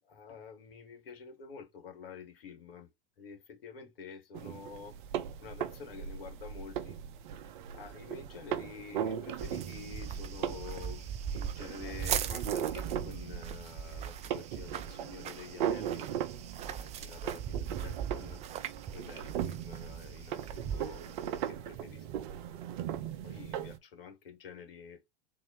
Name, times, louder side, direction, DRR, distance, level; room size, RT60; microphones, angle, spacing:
voice 1, 0.0-2.9 3.2-5.0 5.4-7.0 7.7-16.1 16.7-18.4 18.9-22.2 23.2-25.1, left 6 dB, 70° left, 1.7 m, -48 dB
sound 1, 4.3-23.8, right 9 dB, 55° right, 0.7 m, -39 dB
sound 2, 9.4-21.5, right 8 dB, 25° right, 0.4 m, -40 dB
4.1 x 2.9 x 2.9 m
figure-of-eight pair, 95°, 29 cm